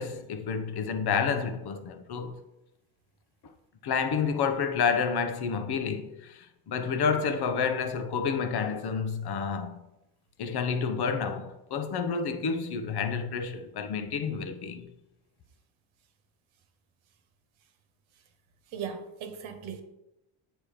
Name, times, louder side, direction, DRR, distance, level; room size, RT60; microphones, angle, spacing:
voice 1, 0.0-2.3 3.8-9.8 10.4-14.9, left 6 dB, 50° left, 0.9 m, -29 dB
voice 2, 18.7-19.8, right 7 dB, 65° right, 1.1 m, -38 dB
8.4 x 3.1 x 4.9 m
supercardioid pair, 70°, 49 cm